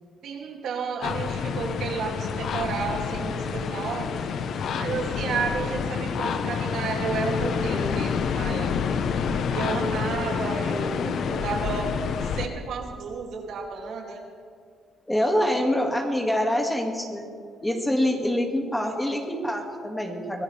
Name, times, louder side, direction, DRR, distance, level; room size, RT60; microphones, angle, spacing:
voice 1, 0.2-4.2 4.8-9.0 9.5-11.9 12.2-14.2, right 4 dB, 70° right, 0 dB, 2.5 m, -32 dB
sound 1, 1.0-12.5, left 6 dB, 60° left, 0.9 m, -28 dB
voice 2, 15.1-17.3 17.6-20.4, left 1 dB, 10° left, 2 dB, 2.0 m, -25 dB
24.5 x 17.0 x 3.4 m, 2.2 s
cardioid pair, 110°, 0 cm